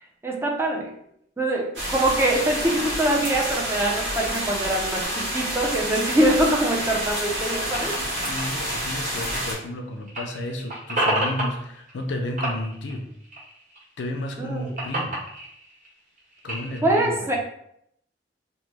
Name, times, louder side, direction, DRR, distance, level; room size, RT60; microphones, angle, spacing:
voice 1, 0.2-0.9 1.4-7.9 14.4-14.7 16.8-17.4, right 1 dB, 15° right, 0 dB, 0.4 m, -23 dB
sound 1, 1.7-9.5, equal, 80° right, 1.3 m, -28 dB
sound 2, 5.0-9.8 10.0-12.1 12.4-13.8 14.2-16.8, right 1 dB, 45° right, 1.4 m, -31 dB
voice 2, 7.7-13.1 14.0-15.2 16.4-17.4, left 1 dB, 80° left, 3 dB, 0.5 m, -32 dB
2.9 x 2.1 x 3.3 m, 0.72 s
head